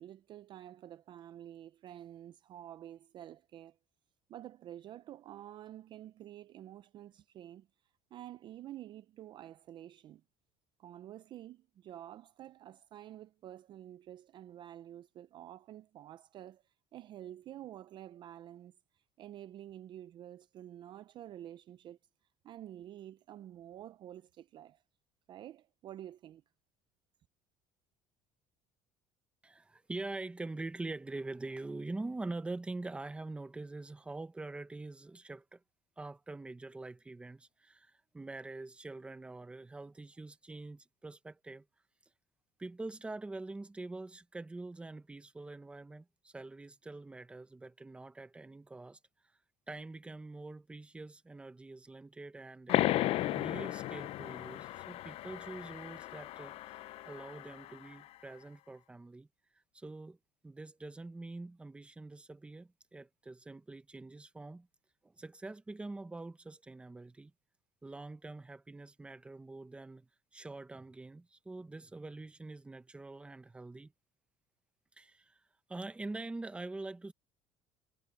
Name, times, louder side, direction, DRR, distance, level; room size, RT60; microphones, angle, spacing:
voice 1, 0.0-3.8 4.3-10.2 10.8-22.0 22.4-24.8 25.3-26.4, right 12 dB, 35° right, 0.4 m, -49 dB
voice 2, 29.4-35.6 36.0-41.6 42.6-49.0 49.7-56.8 57.1-59.3 59.7-60.2 60.4-64.7 65.0-67.3 67.8-73.9 75.0-75.4 75.7-77.1, right 2 dB, 10° right, 0.8 m, -45 dB
sound 1, 52.7-57.9, left 15 dB, 45° left, 0.5 m, -35 dB
cardioid pair, 170°, 13 cm